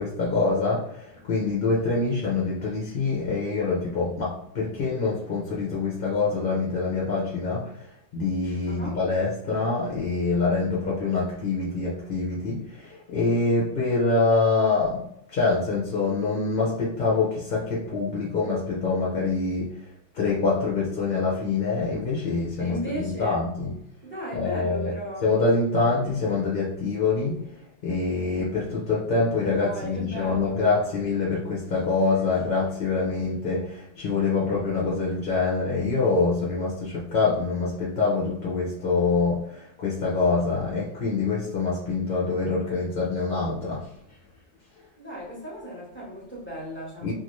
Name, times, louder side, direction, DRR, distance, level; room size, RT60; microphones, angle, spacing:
voice 1, 0.0-7.7 8.1-15.0 15.3-19.7 20.1-23.7 24.3-24.9 25.2-27.4 27.8-43.8 47.0-47.1, left 3 dB, 50° left, -5 dB, 0.7 m, -25 dB
voice 2, 8.6-9.0 22.6-23.5 24.0-25.3 29.4-30.9 45.0-47.1, equal, 10° left, -5 dB, 0.8 m, -36 dB
2.6 x 2.5 x 3.0 m, 0.77 s
omnidirectional pair, 1.4 m